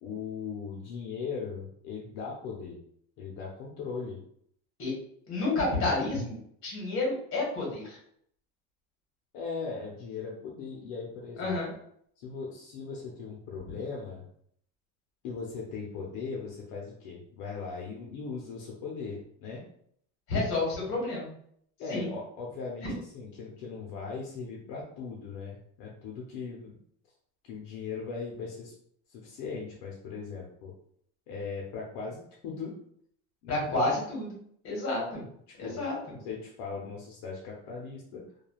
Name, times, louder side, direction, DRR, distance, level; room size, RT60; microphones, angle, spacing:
voice 1, 0.0-2.8 3.2-4.2 9.3-11.6 12.2-14.3 15.2-19.6 21.8-26.8 27.4-28.7 29.1-30.7 31.3-32.7 33.4-33.7 35.6-35.9 36.2-38.2, left 5 dB, 75° left, -2 dB, 0.7 m, -39 dB
voice 2, 5.3-6.4 6.6-8.0 11.4-11.7 20.3-21.3 21.9-22.1 22.8-22.9 33.5-34.4 34.6-35.2 35.6-36.2, left 2 dB, 40° left, -3 dB, 1.3 m, -30 dB
3.1 x 2.3 x 2.3 m, 0.66 s
cardioid pair, 175°, 32 cm